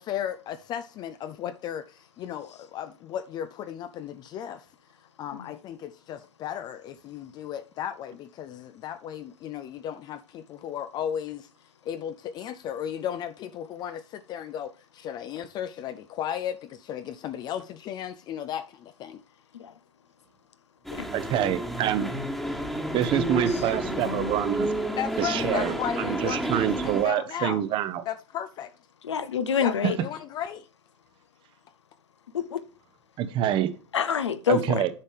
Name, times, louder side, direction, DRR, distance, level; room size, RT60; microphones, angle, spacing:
voice 1, 0.0-4.7 5.2-11.5 11.9-19.2 25.0-27.6 28.1-28.7 29.6-30.7, left 9 dB, 30° left, 0.4 m, -35 dB
sound 1, 20.8-27.0, equal, ahead, 1.4 m, -30 dB
voice 2, 21.1-22.1 22.9-24.7 25.2-28.0 33.2-33.7 34.5-34.9, right 11 dB, 35° right, 0.8 m, -26 dB
voice 3, 29.0-30.0 32.3-32.6 33.9-34.8, left 7 dB, 70° left, 0.7 m, -26 dB
10.5 x 5.4 x 3.4 m
figure-of-eight pair, 90°, 15 cm